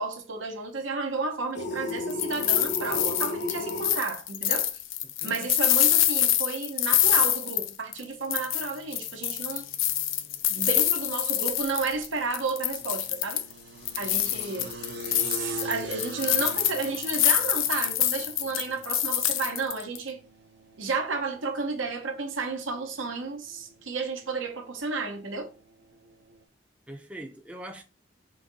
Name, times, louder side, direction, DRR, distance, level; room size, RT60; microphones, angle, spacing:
voice 1, 0.0-4.7 5.2-9.6 10.5-13.4 14.0-14.7 15.2-20.2 20.8-25.5, right 4 dB, 85° right, 0.9 m, -32 dB
sound 1, 1.5-3.9, left 1 dB, 65° left, 0.8 m, -33 dB
sound 2, 1.9-8.0 8.3-12.1 12.3-13.5 13.9-20.0, left 12 dB, 90° left, 0.5 m, -26 dB
voice 2, 5.0-5.4 26.9-27.8, right 1 dB, 5° right, 0.4 m, -42 dB
sound 3, 8.4-26.4, right 2 dB, 55° right, 0.6 m, -45 dB
3.8 x 2.7 x 3.9 m
head